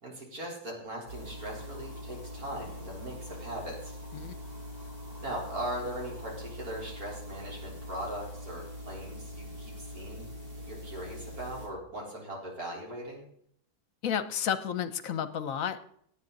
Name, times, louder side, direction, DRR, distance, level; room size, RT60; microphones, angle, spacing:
voice 1, 0.0-4.0 5.2-10.2 10.7-13.2, right 1 dB, 60° right, -2 dB, 4.5 m, -39 dB
sound 1, 1.1-11.7, equal, 90° right, 5.5 m, -43 dB
voice 2, 14.0-15.9, left 8 dB, 60° left, 12 dB, 1.2 m, -31 dB
17.5 x 9.3 x 4.0 m, 0.67 s
omnidirectional pair, 1.8 m